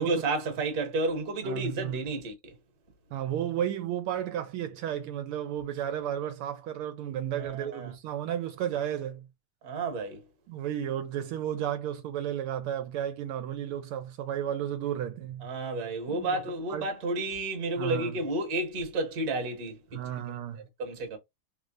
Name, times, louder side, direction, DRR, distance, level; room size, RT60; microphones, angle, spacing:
voice 1, 0.0-2.5 7.4-7.9 9.6-10.2 15.4-20.0 20.8-21.2, right 2 dB, 50° right, 1.4 m, -31 dB
voice 2, 1.4-2.1 3.1-9.3 10.5-15.5 16.1-16.4 16.7-16.9 17.8-18.2 19.9-20.6, right 10 dB, 80° right, 1.5 m, -33 dB
3.7 x 3.1 x 2.5 m
omnidirectional pair, 2.4 m